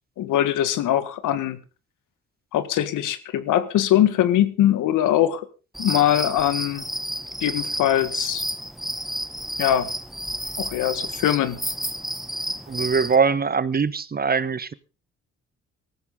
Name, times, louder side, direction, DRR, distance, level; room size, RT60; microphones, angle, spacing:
voice 1, 0.2-1.6 2.5-5.5 5.8-6.8 7.4-8.4 9.6-9.9 10.6-11.6, left 11 dB, 85° left, 1.7 m, -22 dB
sound 1, 5.8-13.2, equal, ahead, 1.3 m, -31 dB
voice 2, 12.7-14.7, right 5 dB, 30° right, 1.0 m, -22 dB
19.0 x 14.0 x 3.8 m
cardioid pair, 90°, 30 cm